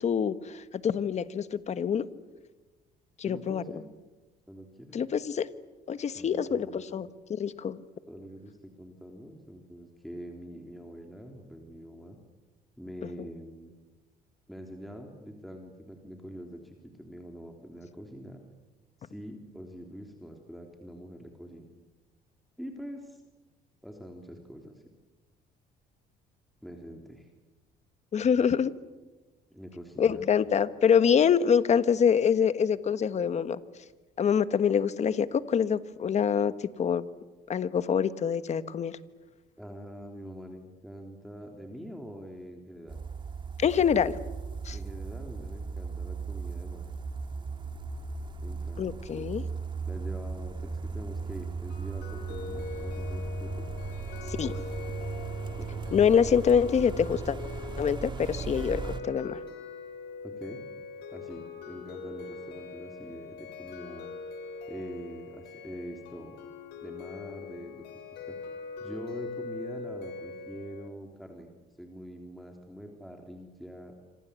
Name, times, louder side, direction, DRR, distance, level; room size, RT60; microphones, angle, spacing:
voice 1, 0.0-2.1 3.2-3.6 4.9-5.5 5.9-7.8 13.2-13.3 28.1-28.7 30.0-33.6 34.2-37.1 37.5-39.0 43.6-44.2 44.6-44.8 48.8-49.4 54.3-54.6 55.9-57.4 57.8-59.4, left 7 dB, 40° left, 13 dB, 1.4 m, -25 dB
voice 2, 3.2-3.9 4.5-5.0 6.0-6.9 8.1-12.2 12.8-13.7 14.5-18.4 19.0-21.7 22.6-23.2 23.8-24.8 26.6-27.3 29.5-30.2 39.6-43.0 44.7-46.9 48.4-49.3 49.9-53.7 55.6-55.8 60.2-60.6 61.1-64.1 64.7-66.4 66.8-67.8 68.3-68.4 68.8-71.5 71.8-73.9, equal, ahead, 2 dB, 3.4 m, -44 dB
sound 1, 42.9-59.0, right 4 dB, 25° right, 2.6 m, -37 dB
sound 2, 51.7-70.9, left 4 dB, 85° left, 5.6 m, -42 dB
27.5 x 25.5 x 8.4 m, 1.2 s
cardioid pair, 110°, 17 cm